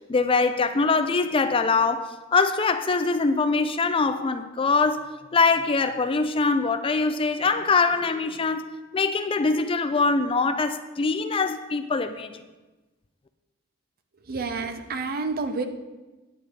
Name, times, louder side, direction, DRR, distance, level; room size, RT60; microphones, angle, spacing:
voice 1, 0.1-12.3, left 4 dB, 25° left, 0.4 m, -23 dB
voice 2, 14.3-15.6, right 4 dB, 50° right, 0.7 m, -29 dB
9.5 x 9.3 x 3.3 m
head